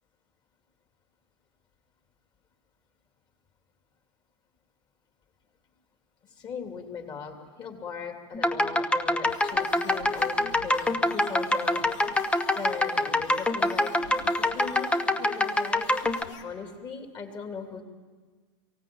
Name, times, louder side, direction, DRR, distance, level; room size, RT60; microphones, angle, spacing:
voice 1, 6.4-12.2 12.5-13.9 14.3-14.9 15.1-15.9 16.4-17.8, left 5 dB, 30° left, 4 dB, 2.9 m, -39 dB
sound 1, 8.3-16.2, left 1 dB, 5° left, 0.8 m, -25 dB
sound 2, 9.2-16.4, left 6 dB, 85° left, 2.7 m, -45 dB
23.5 x 17.0 x 8.6 m, 1.4 s
supercardioid pair, 140°, 15 cm